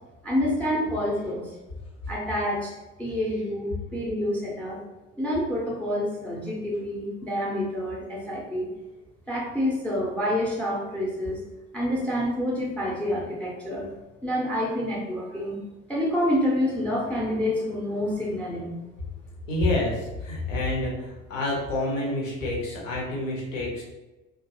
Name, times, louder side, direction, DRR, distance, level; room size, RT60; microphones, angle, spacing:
voice 1, 0.2-1.5 2.1-2.7 3.0-4.8 5.2-8.7 9.3-11.4 11.7-13.9 14.2-15.6 15.9-18.7, left 1 dB, 5° left, -3 dB, 0.4 m, -27 dB
voice 2, 19.5-23.8, left 2 dB, 80° left, -4 dB, 0.8 m, -28 dB
2.5 x 2.3 x 2.6 m, 1.1 s
figure-of-eight pair, 60°, 39 cm